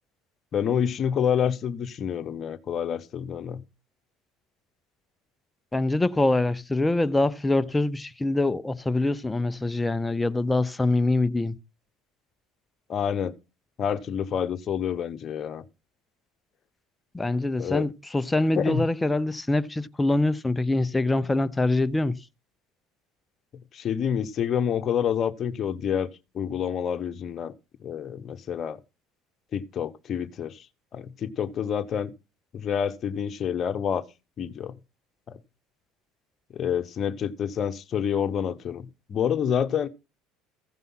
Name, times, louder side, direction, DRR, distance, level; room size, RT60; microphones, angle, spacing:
voice 1, 0.5-3.6 12.9-13.3 13.8-15.6 17.6-17.9 18.5-18.9 23.7-26.1 26.3-27.5 27.8-28.8 29.5-30.6 30.9-32.1 32.5-34.0 34.4-34.7 35.3-35.4 36.5-39.9, left 8 dB, 45° left, 1.1 m, -28 dB
voice 2, 5.7-11.6 17.1-22.1, left 2 dB, 15° left, 0.7 m, -24 dB
15.5 x 5.5 x 5.6 m
supercardioid pair, 90°, 0 cm